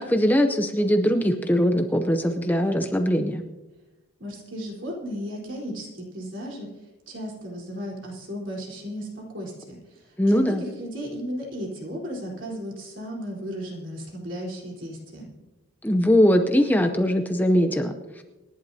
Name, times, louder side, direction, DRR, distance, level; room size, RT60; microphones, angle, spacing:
voice 1, 0.0-3.4 10.2-10.6 15.8-18.2, equal, 10° left, 6 dB, 0.6 m, -21 dB
voice 2, 4.2-6.7 7.1-15.3, equal, 60° right, -2 dB, 4.0 m, -35 dB
27.0 x 11.0 x 2.8 m, 1.1 s
head